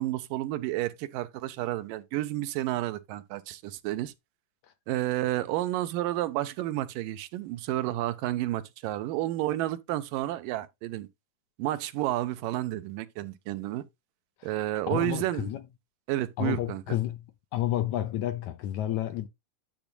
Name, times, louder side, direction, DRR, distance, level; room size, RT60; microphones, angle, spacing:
voice 1, 0.0-4.1 4.9-11.1 11.6-13.9 14.4-15.5 16.1-17.0, right 15 dB, 85° right, 2.4 m, -31 dB
voice 2, 14.4-15.6 16.4-17.2 17.5-19.3, left 12 dB, 80° left, 1.7 m, -31 dB
10.5 x 7.1 x 2.2 m
omnidirectional pair, 3.8 m